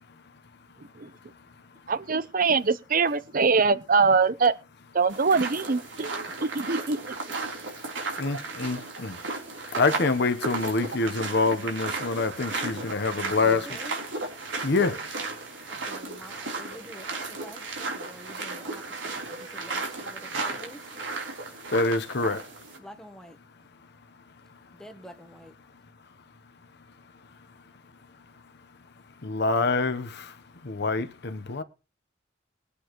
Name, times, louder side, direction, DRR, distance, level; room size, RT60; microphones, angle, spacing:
voice 1, 1.9-4.5 4.9-7.0, right 4 dB, 50° right, 0.8 m, -23 dB
sound 1, 5.1-22.8, right 3 dB, 90° right, 3.7 m, -35 dB
voice 2, 8.2-9.1 9.8-13.7 14.6-15.0 21.7-22.4 29.2-30.3 30.7-31.6, left 3 dB, 60° left, 1.0 m, -26 dB
voice 3, 13.3-14.0 15.7-20.8 22.8-23.4 24.7-25.5, equal, 5° left, 1.2 m, -47 dB
21.5 x 8.4 x 3.1 m
head